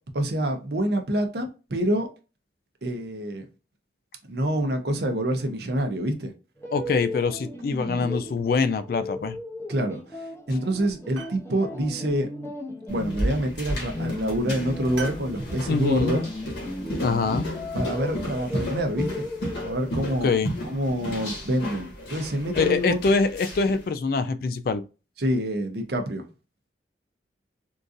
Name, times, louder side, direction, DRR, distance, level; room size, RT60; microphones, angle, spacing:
voice 1, 0.1-2.1 2.8-3.5 4.3-6.3 9.7-12.3 12.9-16.2 17.7-19.3 19.6-20.3 20.6-23.1 25.2-26.3, right 1 dB, 60° right, 0.7 m, -27 dB
sound 1, 6.6-20.0, left 1 dB, 15° left, 0.6 m, -36 dB
voice 2, 6.7-9.4 15.7-16.1 17.0-17.5 20.2-20.5 22.6-24.8, left 4 dB, 55° left, 0.3 m, -24 dB
sound 2, 7.2-8.0 8.4-9.0 9.8-10.3 10.6-11.5 12.9-13.4 13.8-14.0 15.0-15.3, right 4 dB, 85° right, 1.0 m, -43 dB
sound 3, 12.9-23.8, equal, 70° left, 1.5 m, -34 dB
3.7 x 2.5 x 2.5 m
head